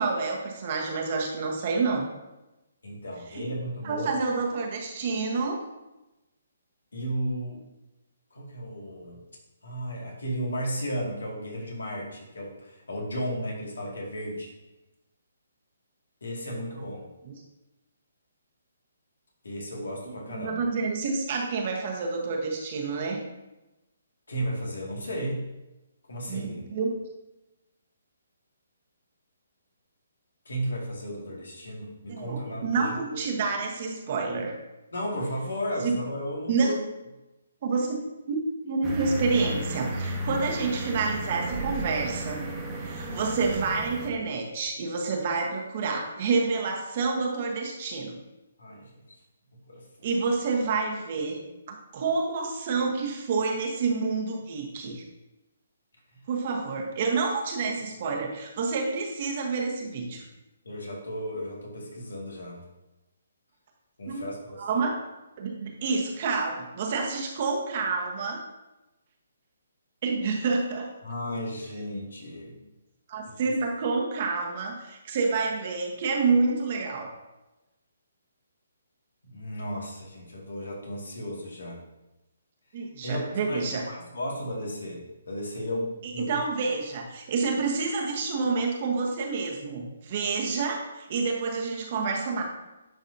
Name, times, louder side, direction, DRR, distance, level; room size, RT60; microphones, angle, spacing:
voice 1, 0.0-2.1 3.3-3.4 3.8-5.6 16.4-16.6 17.3-17.4 20.3-23.2 26.3-26.9 32.1-34.5 35.8-36.0 36.5-36.7 37.6-42.4 42.8-48.2 50.0-51.4 51.7-55.0 56.3-60.2 64.1-64.3 64.6-64.9 65.4-68.4 70.0-70.9 73.1-77.1 82.7-83.8 86.0-92.4, right 4 dB, 45° right, 1 dB, 1.2 m, -28 dB
voice 2, 2.8-4.1 6.9-7.6 8.3-9.2 9.6-14.5 16.2-17.1 19.4-20.7 24.3-25.5 26.1-26.6 30.5-33.2 34.9-36.7 43.1-43.2 48.6-49.2 49.7-49.8 60.6-62.6 64.0-64.8 71.0-72.6 79.3-81.8 83.0-86.3, equal, 80° left, -2 dB, 2.1 m, -34 dB
sound 1, 38.8-44.1, right 1 dB, 15° right, 1.3 m, -33 dB
10.5 x 4.1 x 2.7 m, 1.0 s
hypercardioid pair, 145°, 0 cm